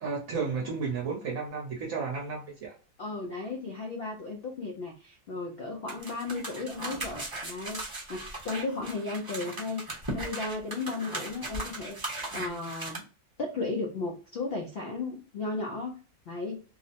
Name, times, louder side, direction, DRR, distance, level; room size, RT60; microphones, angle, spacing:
voice 1, 0.0-2.7, right 5 dB, 65° right, -1 dB, 1.0 m, -33 dB
voice 2, 3.0-13.0 13.4-16.0 16.3-16.6, left 3 dB, 70° left, 1 dB, 0.5 m, -35 dB
sound 1, 5.9-13.0, right 1 dB, 20° right, 0.7 m, -38 dB
2.8 x 2.0 x 2.7 m, 0.38 s
omnidirectional pair, 1.6 m